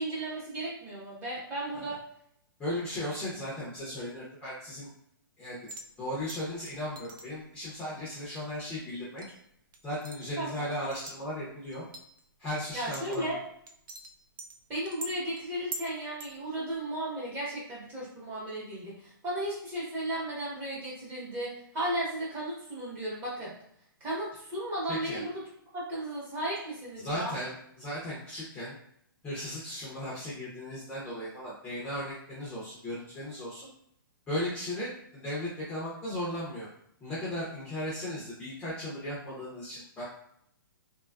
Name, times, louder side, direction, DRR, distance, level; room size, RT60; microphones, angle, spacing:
voice 1, 0.0-2.0 10.4-10.7 12.7-13.4 14.7-23.5 24.0-25.4 25.7-27.3, right 1 dB, 15° right, -6 dB, 1.0 m, -35 dB
voice 2, 2.6-4.9 5.4-5.6 6.0-9.2 9.8-11.8 12.4-13.3 24.9-25.2 27.0-28.8 29.2-33.7 34.3-36.7 37.0-40.0, left 1 dB, 10° left, -8 dB, 0.6 m, -36 dB
sound 1, 5.7-5.9 6.3-7.3 7.7-7.8 8.4-8.5 9.2-9.4 9.7-10.2 10.7-11.2 11.7-12.2 12.7-13.3 13.7-14.6 14.9-15.9 16.2-16.4 16.7-16.8, right 2 dB, 60° right, 0.4 m, -44 dB
2.9 x 2.4 x 2.3 m, 0.70 s
hypercardioid pair, 160°, 12 cm